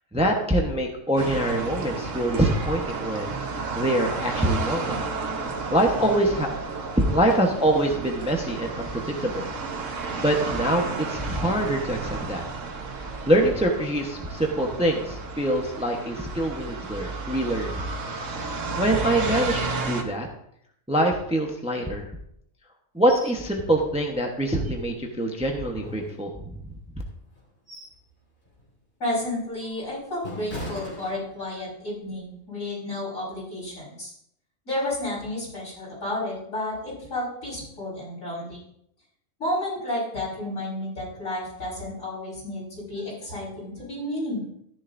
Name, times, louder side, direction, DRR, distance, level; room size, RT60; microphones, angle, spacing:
voice 1, 0.1-3.3 3.7-5.0 5.4-6.5 6.9-9.5 10.2-12.4 13.3-17.8 18.8-20.3 20.9-22.1 22.9-26.6 26.9-27.0, right 1 dB, 5° right, 2 dB, 1.0 m, -24 dB
sound 1, 1.2-20.0, right 4 dB, 65° right, 1.5 m, -32 dB
sound 2, 23.1-23.4 23.8-23.9 24.3-25.2 25.7-26.7 27.3-28.1 28.5-28.7 29.3-31.7 32.1-32.3, left 1 dB, 45° left, 3.1 m, -40 dB
voice 2, 29.0-34.1 34.7-38.6 39.4-44.5, left 1 dB, 70° left, -7 dB, 5.6 m, -31 dB
13.5 x 10.5 x 2.7 m, 0.73 s
omnidirectional pair, 1.4 m